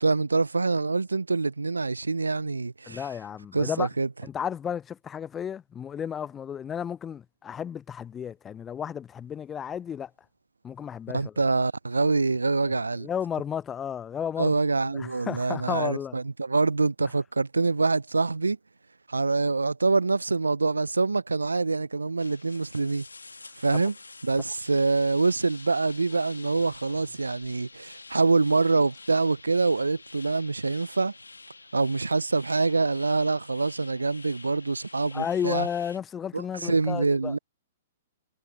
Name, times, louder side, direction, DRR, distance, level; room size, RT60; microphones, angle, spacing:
voice 1, 0.0-3.0 3.5-4.1 11.1-13.1 14.4-18.6 19.1-23.0 23.6-23.9 24.2-31.1 31.7-35.7 36.3-37.4, right 3 dB, 85° right, 0.6 m, -25 dB
voice 2, 2.9-3.9 4.2-10.1 10.6-11.3 12.7-14.5 14.9-16.2 23.7-23.8 35.1-37.3, left 8 dB, 20° left, 0.5 m, -33 dB
sound 1, 22.2-36.0, left 3 dB, 85° left, 1.8 m, -48 dB
sound 2, 24.6-24.7 26.0-27.8 28.9-29.1 29.9-30.1, left 24 dB, 35° left, 7.8 m, -58 dB
figure-of-eight pair, 115°, 0 cm